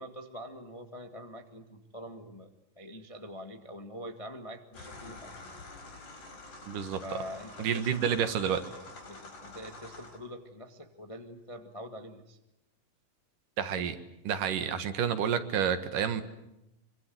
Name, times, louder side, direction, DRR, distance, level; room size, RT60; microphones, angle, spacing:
voice 1, 0.0-2.5 2.8-5.3 7.0-8.3 9.0-12.4, equal, 20° left, 5 dB, 0.9 m, -44 dB
sound 1, 4.7-10.2, left 2 dB, 70° left, 6.0 m, -47 dB
voice 2, 6.7-7.0 7.6-8.6 13.6-14.0 14.2-16.2, right 8 dB, 75° right, 9 dB, 3.2 m, -29 dB
25.0 x 25.0 x 7.8 m, 0.88 s
omnidirectional pair, 3.8 m